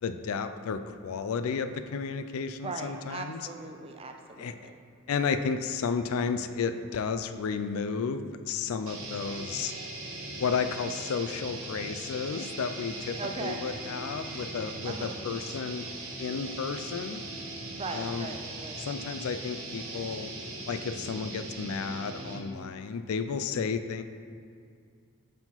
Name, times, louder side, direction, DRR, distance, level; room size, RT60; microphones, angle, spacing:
voice 1, 0.0-3.4 4.4-4.5 5.1-9.7 10.4-15.9 16.2-17.2 17.9-18.3 18.8-20.3 20.7-24.0, left 5 dB, 65° left, 10 dB, 0.4 m, -32 dB
voice 2, 2.6-4.8 13.2-13.8 14.8-15.2 17.7-18.9, right 3 dB, 25° right, 4 dB, 0.4 m, -39 dB
sound 1, 8.9-22.6, right 2 dB, 60° right, 1.1 m, -40 dB
sound 2, 9.3-11.1 12.3-14.7, left 2 dB, 30° left, 0.6 m, -50 dB
5.7 x 4.7 x 5.7 m, 2.3 s
head